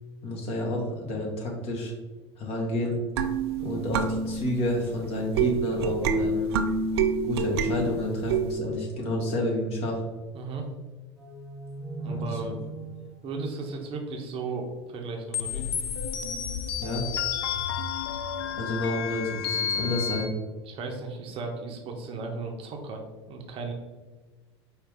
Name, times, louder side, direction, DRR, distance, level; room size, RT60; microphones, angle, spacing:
voice 1, 0.2-1.9 2.4-3.0 3.6-6.5 7.3-10.0 12.0-12.5 16.8-17.0 18.6-20.3, left 1 dB, 45° left, -1 dB, 1.3 m, -30 dB
sound 1, 3.2-8.6, right 4 dB, 65° right, 0.4 m, -28 dB
voice 2, 10.3-10.7 12.0-12.7 13.2-15.7 18.5-18.6 20.6-23.0 23.3-23.7, right 3 dB, 40° right, 2 dB, 0.8 m, -35 dB
sound 2, 11.2-14.6, right 4 dB, 5° right, 0.8 m, -40 dB
sound 3, 15.3-20.3, left 7 dB, 65° left, 0.4 m, -31 dB
4.8 x 2.7 x 3.5 m, 1.3 s
figure-of-eight pair, 75°, 14 cm